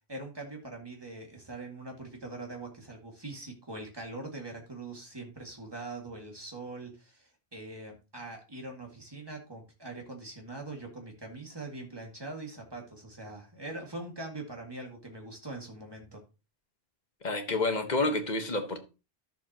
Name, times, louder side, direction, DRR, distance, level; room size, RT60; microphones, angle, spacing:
voice 1, 0.1-16.2, right 2 dB, 20° right, 2.2 m, -42 dB
voice 2, 17.2-18.8, left 2 dB, 45° left, 1.4 m, -29 dB
12.5 x 6.9 x 2.9 m
omnidirectional pair, 1.1 m